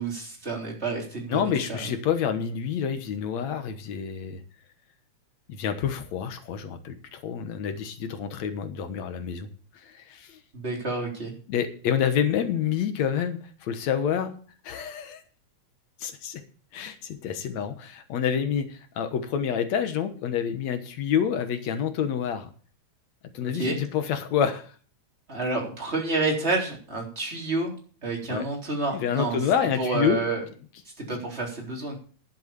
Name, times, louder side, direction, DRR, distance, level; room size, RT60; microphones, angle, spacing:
voice 1, 0.0-1.9 10.5-11.3 23.4-23.8 25.3-29.4 29.8-30.4 31.0-32.0, right 3 dB, 20° right, -1 dB, 3.8 m, -29 dB
voice 2, 1.3-4.4 5.6-9.5 9.8-10.4 11.5-14.3 14.6-15.2 16.0-16.4 16.7-22.5 23.3-24.7 28.3-28.5 28.9-30.2, left 8 dB, 70° left, 9 dB, 2.5 m, -28 dB
11.0 x 8.0 x 6.8 m, 0.42 s
omnidirectional pair, 3.3 m